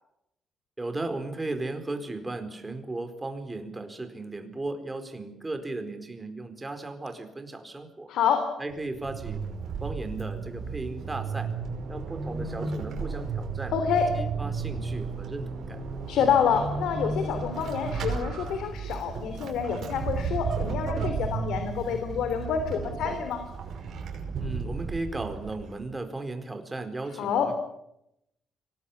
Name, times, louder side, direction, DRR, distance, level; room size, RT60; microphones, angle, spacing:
voice 1, 0.8-8.1 8.6-9.4 9.8-11.5 11.9-13.7 14.2-15.8 24.4-27.5, right 2 dB, 20° right, 7 dB, 4.5 m, -36 dB
voice 2, 8.1-8.4 13.7-14.1 16.1-23.4 27.2-27.5, left 7 dB, 80° left, 7 dB, 3.1 m, -27 dB
Vehicle / Accelerating revving vroom / Squeak, 8.7-25.9, right 5 dB, 65° right, 5.5 m, -33 dB
25.0 x 19.5 x 8.5 m, 0.82 s
cardioid pair, 90°, 0 cm